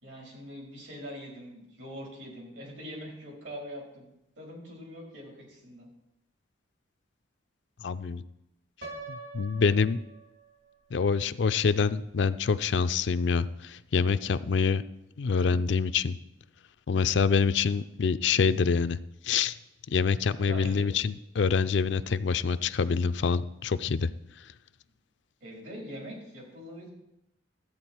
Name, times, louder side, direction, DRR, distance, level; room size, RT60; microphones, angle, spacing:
voice 1, 0.0-5.9 20.4-20.9 25.4-26.9, equal, 75° right, -2 dB, 4.2 m, -43 dB
voice 2, 7.8-8.2 9.1-10.0 10.9-14.8 15.2-16.2 16.9-19.0 19.2-19.6 19.9-24.1, left 5 dB, 70° left, 13 dB, 0.4 m, -26 dB
Piano, 8.8-10.8, right 3 dB, 55° right, 2.2 m, -44 dB
13.0 x 8.6 x 4.5 m, 0.86 s
head